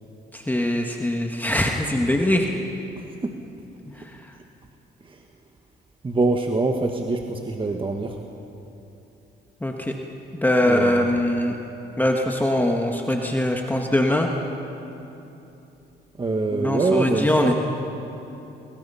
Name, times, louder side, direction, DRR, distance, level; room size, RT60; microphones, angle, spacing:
voice 1, 0.3-2.5 3.9-4.2 9.6-9.9 10.4-11.5 12.0-14.3 16.5-17.5, left 1 dB, 10° left, 1 dB, 1.7 m, -22 dB
voice 2, 6.0-8.1 10.6-11.0 16.2-17.5, right 3 dB, 25° right, 3 dB, 1.5 m, -24 dB
28.0 x 22.0 x 5.7 m, 2.9 s
cardioid pair, 90°, 20 cm